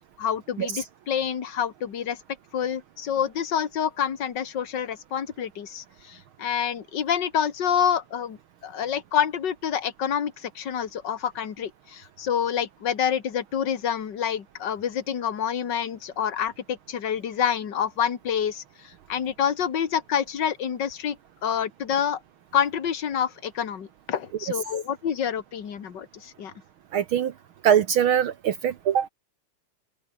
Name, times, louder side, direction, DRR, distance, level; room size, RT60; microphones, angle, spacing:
voice 1, 0.2-2.2 2.5-8.4 8.6-21.2 21.4-22.2 22.5-26.5, left 8 dB, 40° left, 2.1 m, -27 dB
voice 2, 26.9-27.3 27.6-29.1, right 9 dB, 70° right, 1.3 m, -22 dB
omnidirectional pair, 3.3 m